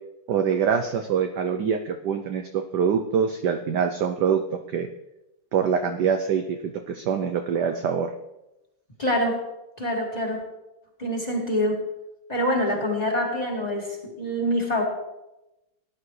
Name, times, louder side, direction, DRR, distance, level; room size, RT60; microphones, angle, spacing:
voice 1, 0.3-4.9 5.5-8.1, right 7 dB, 70° right, 6 dB, 1.0 m, -24 dB
voice 2, 9.0-9.4 9.8-10.4 11.0-11.8 12.3-14.8, equal, 20° left, -1 dB, 2.2 m, -25 dB
17.5 x 11.0 x 3.2 m, 0.96 s
omnidirectional pair, 2.4 m